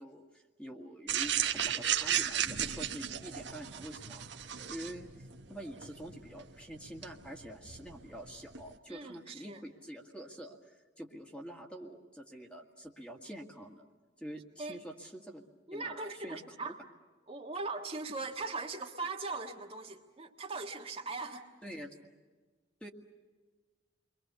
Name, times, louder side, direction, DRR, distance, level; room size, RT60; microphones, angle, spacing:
voice 1, 0.0-4.2 4.7-13.9 14.2-15.4 15.7-16.4 21.6-22.0 22.8-22.9, right 1 dB, 5° left, 1 dB, 1.9 m, -46 dB
sound 1, 1.1-8.7, right 9 dB, 65° right, 1.2 m, -35 dB
voice 2, 8.9-9.6 14.6-14.8 15.7-16.7 17.3-21.4, right 3 dB, 30° right, 1 dB, 1.5 m, -40 dB
30.0 x 23.0 x 6.9 m, 1.4 s
head